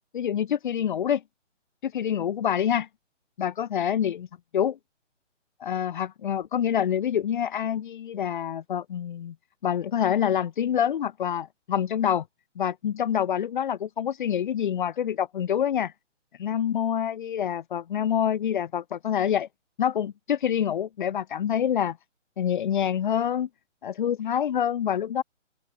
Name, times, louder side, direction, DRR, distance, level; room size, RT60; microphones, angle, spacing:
voice 1, 0.1-1.2 1.8-2.9 3.4-4.3 4.5-4.8 5.6-9.3 9.6-12.2 12.6-15.9 16.4-19.5 19.8-22.0 22.4-23.5 23.8-25.2, left 9 dB, 40° left, 4.5 m, -26 dB
open air
figure-of-eight pair, 150°, 38 cm